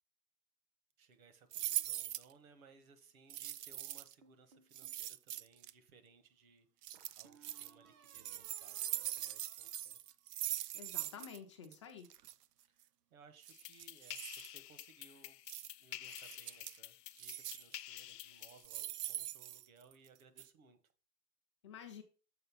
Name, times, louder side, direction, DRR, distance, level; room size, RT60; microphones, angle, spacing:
voice 1, 1.0-10.0 12.6-15.4 15.8-20.9, right 5 dB, 60° right, 10 dB, 1.4 m, -64 dB
sound 1, 1.5-2.3 3.3-4.1 4.7-5.7 6.8-7.7 8.1-11.4 11.6-11.7 12.0-12.3 13.4-14.5 15.5-15.7 16.0-16.8 17.2-17.7 18.4-20.1 20.4-20.5, right 12 dB, 75° right, 0.6 m, -42 dB
sound 2, 4.2-5.0 6.9-10.6, right 6 dB, 30° right, 0.7 m, -65 dB
voice 2, 10.7-12.1 21.6-22.0, left 7 dB, 20° left, 4 dB, 0.4 m, -50 dB
sound 3, 13.5-18.7, left 13 dB, 85° left, 0.6 m, -50 dB
6.8 x 4.5 x 5.7 m, 0.36 s
hypercardioid pair, 140°, 47 cm